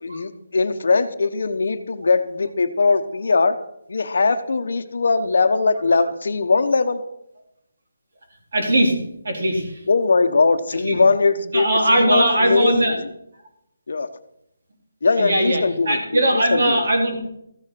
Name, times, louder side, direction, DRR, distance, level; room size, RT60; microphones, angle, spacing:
voice 1, 0.0-3.6 3.9-7.0 9.9-12.9 13.9-14.1 15.0-16.0 16.3-16.8, left 4 dB, 55° left, 9 dB, 1.0 m, -20 dB
voice 2, 8.5-8.9 9.2-9.8 10.8-11.0 11.5-12.9 15.2-17.1, right 1 dB, 50° right, 1 dB, 4.0 m, -19 dB
14.5 x 7.8 x 6.0 m, 0.77 s
hypercardioid pair, 175°, 0 cm